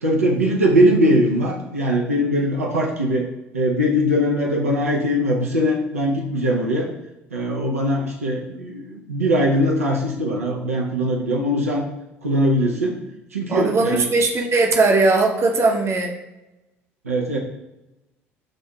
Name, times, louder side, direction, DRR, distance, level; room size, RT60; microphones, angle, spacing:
voice 1, 0.0-3.3 3.5-6.9 7.3-11.8 12.2-13.0 13.3-14.1 17.0-17.4, equal, 85° right, -2 dB, 0.6 m, -21 dB
voice 2, 13.5-16.1, right 3 dB, 35° right, 1 dB, 0.8 m, -19 dB
7.5 x 2.6 x 2.3 m, 0.96 s
figure-of-eight pair, 55°, 7 cm